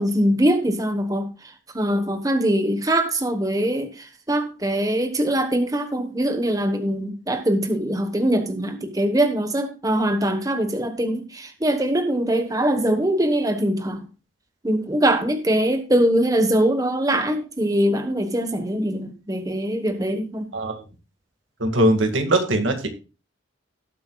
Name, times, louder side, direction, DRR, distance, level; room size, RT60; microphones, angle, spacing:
voice 1, 0.0-14.1 14.6-20.5, right 1 dB, 20° right, 1.2 m, -22 dB
voice 2, 20.5-20.8 21.6-22.9, right 1 dB, 85° right, 2.0 m, -20 dB
18.5 x 7.8 x 2.3 m
head